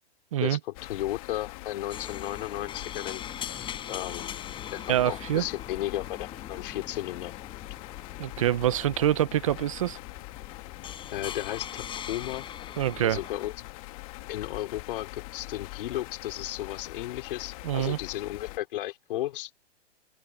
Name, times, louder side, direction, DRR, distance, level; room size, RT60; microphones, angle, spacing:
voice 1, 0.4-3.2 3.9-4.3 4.7-7.3 11.1-12.5 13.0-13.5 14.3-19.5, left 14 dB, 50° left, 4.0 m, -34 dB
sound 1, 0.7-18.6, left 22 dB, 30° left, 1.4 m, -43 dB
sound 2, 1.9-13.5, left 9 dB, 15° left, 7.3 m, -42 dB
voice 2, 4.9-5.4 8.2-10.0 12.8-13.2 17.6-18.0, right 12 dB, 30° right, 0.4 m, -25 dB
hypercardioid pair, 160°, 33 cm